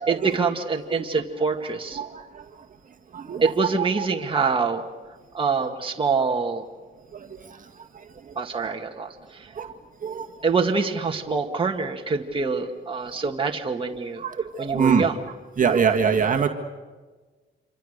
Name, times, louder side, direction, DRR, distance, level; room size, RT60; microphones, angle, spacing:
voice 1, 0.0-2.0 3.4-4.8 5.3-6.7 8.4-9.5 10.4-14.2 14.6-15.2, right 4 dB, 25° right, 2 dB, 2.0 m, -25 dB
voice 2, 2.0-2.4 3.1-3.4 4.0-4.1 7.1-7.3 8.3-8.4 9.6-9.7 10.0-10.3 14.2-15.1 15.6-16.5, right 6 dB, 40° right, 4 dB, 2.0 m, -24 dB
27.5 x 25.0 x 6.8 m, 1.3 s
cardioid pair, 90°, 20 cm